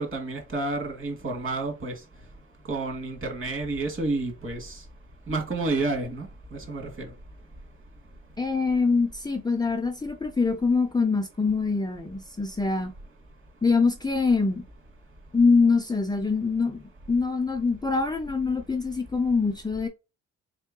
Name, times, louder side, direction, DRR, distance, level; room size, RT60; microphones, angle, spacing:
voice 1, 0.0-1.9 2.7-4.8 5.3-7.1, right 3 dB, 40° right, 2.2 m, -30 dB
voice 2, 8.4-12.9 13.6-14.6 15.3-16.8 17.1-19.9, left 4 dB, 15° left, 0.5 m, -24 dB
3.6 x 3.3 x 3.8 m
cardioid pair, 90°, 30 cm